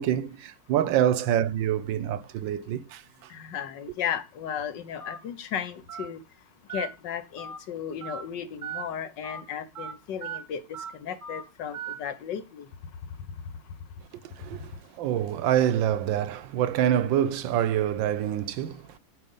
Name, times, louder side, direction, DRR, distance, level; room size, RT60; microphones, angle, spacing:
voice 1, 0.0-3.3 14.2-19.0, right 10 dB, 75° right, 1.3 m, -26 dB
voice 2, 3.3-6.2 6.7-10.6 11.0-12.7, left 8 dB, 65° left, 1.4 m, -35 dB
Telephone, 5.0-5.2 5.9-6.1 6.7-6.9 7.4-7.6 8.0-8.2 8.6-8.8 9.2-9.4 9.7-9.9 10.2-10.4 10.7-10.9 11.2-11.4 11.7-11.9, right 6 dB, 30° right, 1.0 m, -37 dB
9.3 x 4.8 x 5.5 m
omnidirectional pair, 2.2 m